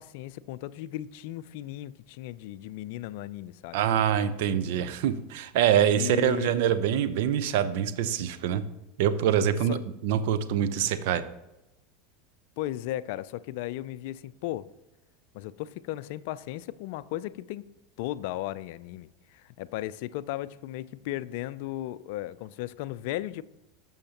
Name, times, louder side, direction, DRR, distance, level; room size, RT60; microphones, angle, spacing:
voice 1, 0.0-3.8 6.0-6.5 9.7-9.8 12.6-14.7 15.3-17.6 18.0-23.4, left 14 dB, 60° left, 0.4 m, -36 dB
voice 2, 3.7-8.6 9.0-9.8 10.0-11.2, right 9 dB, 60° right, 0.8 m, -25 dB
18.0 x 7.1 x 2.9 m
hypercardioid pair, 85°, 0 cm